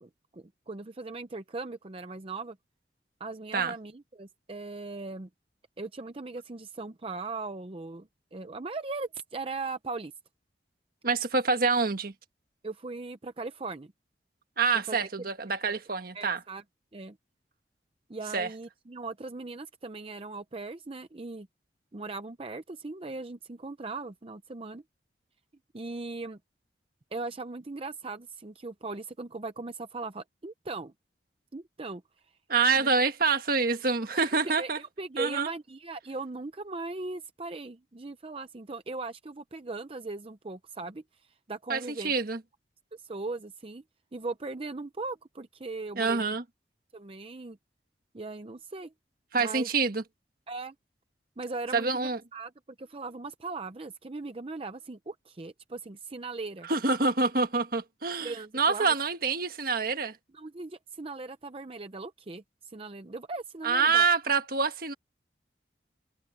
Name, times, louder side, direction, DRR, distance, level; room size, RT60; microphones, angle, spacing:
voice 1, 0.0-2.6 3.2-5.3 5.8-10.1 12.6-13.9 14.7-15.3 15.6-15.8 16.1-16.6 16.9-17.2 18.1-21.5 21.9-24.8 25.7-26.4 27.1-30.9 31.5-32.0 32.8-32.9 34.1-42.1 42.9-43.8 44.1-46.3 46.9-47.6 48.1-48.9 49.4-49.7 50.5-50.7 51.4-52.5 52.8-56.7 58.2-58.9 60.3-64.0, right 3 dB, 30° right, 0.6 m, -39 dB
voice 2, 11.0-12.1 14.6-16.4 18.3-18.5 32.5-34.8 35.2-35.5 41.7-42.4 46.0-46.4 49.3-50.0 51.7-52.2 56.7-60.2 63.6-64.9, right 4 dB, 55° right, 1.6 m, -26 dB
head